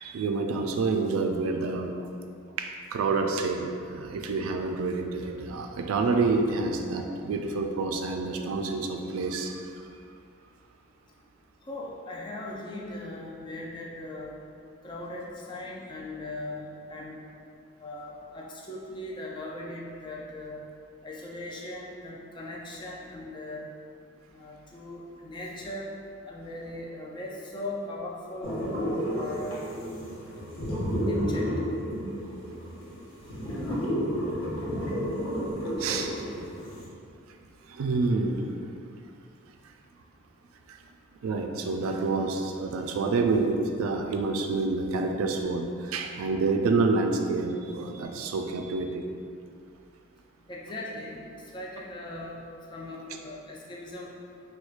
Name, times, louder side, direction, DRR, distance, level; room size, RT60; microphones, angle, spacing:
voice 1, 0.0-1.9 2.6-9.5 35.4-35.5 35.8-36.2 37.7-38.5 40.7-40.8 41.2-49.0, right 3 dB, 90° right, 4 dB, 0.3 m, -28 dB
voice 2, 11.7-14.4 14.8-17.2 17.8-20.7 21.0-23.7 24.3-25.9 26.3-28.5 29.1-29.6 31.0-31.5 50.5-51.2 51.5-54.1, left 1 dB, 25° left, -3 dB, 0.3 m, -39 dB
sound 1, 28.4-36.9, equal, 70° left, 0.8 m, -31 dB
4.4 x 2.2 x 2.4 m, 2.4 s
head